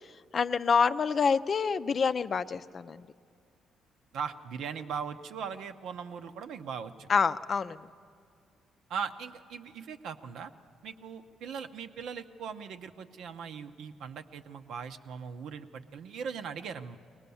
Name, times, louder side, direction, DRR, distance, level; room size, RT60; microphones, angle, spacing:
voice 1, 0.3-3.0 7.1-7.8, left 5 dB, 45° left, 12 dB, 0.5 m, -27 dB
voice 2, 4.1-7.1 8.9-10.5 10.8-17.0, right 6 dB, 75° right, 8 dB, 0.8 m, -39 dB
22.0 x 19.0 x 7.0 m, 2.3 s
supercardioid pair, 70°, 0 cm